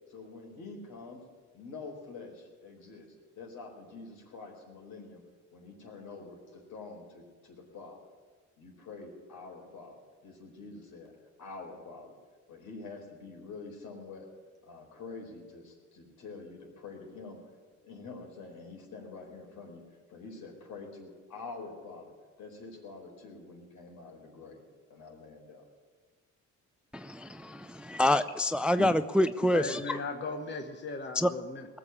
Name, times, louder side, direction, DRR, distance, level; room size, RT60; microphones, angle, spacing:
voice 1, 0.1-1.2 1.5-5.2 5.5-8.0 8.6-11.1 11.4-12.2 12.5-14.3 14.6-17.4 17.8-19.8 20.1-22.1 22.4-24.6 24.9-25.7, left 3 dB, 75° left, 0 dB, 4.3 m, -46 dB
voice 2, 26.9-29.8 31.2-31.3, left 1 dB, 5° right, 12 dB, 0.4 m, -27 dB
voice 3, 29.5-31.7, left 3 dB, 35° left, 4 dB, 1.2 m, -37 dB
19.5 x 7.0 x 8.7 m, 1.4 s
cardioid pair, 90°, 30 cm